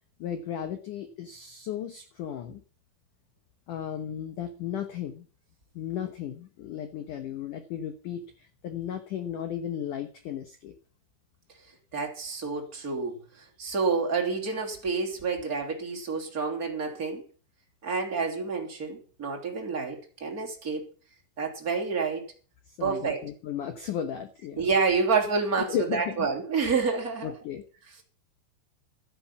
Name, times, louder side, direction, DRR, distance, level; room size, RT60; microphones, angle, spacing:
voice 1, 0.2-2.6 3.7-5.3 5.7-10.7 22.7-24.7 25.7-26.3 27.2-27.6, left 9 dB, 80° left, 1.8 m, -35 dB
voice 2, 11.9-17.2 17.8-20.9 21.4-22.3 22.8-23.3 24.6-27.3, right 5 dB, 20° right, 2.9 m, -29 dB
13.0 x 9.1 x 7.2 m
omnidirectional pair, 5.6 m